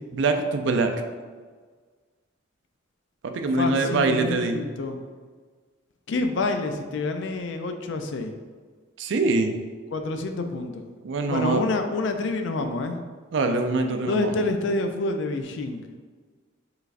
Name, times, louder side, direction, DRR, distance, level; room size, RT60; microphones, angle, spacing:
voice 1, 0.1-0.9 3.2-4.6 9.0-9.5 11.0-11.6 13.3-14.5, right 3 dB, 60° right, 6 dB, 0.4 m, -24 dB
voice 2, 3.6-5.0 6.1-8.3 9.9-10.8 11.3-13.0 14.1-15.9, left 2 dB, 65° left, 6 dB, 0.4 m, -27 dB
4.7 x 3.2 x 2.5 m, 1.5 s
head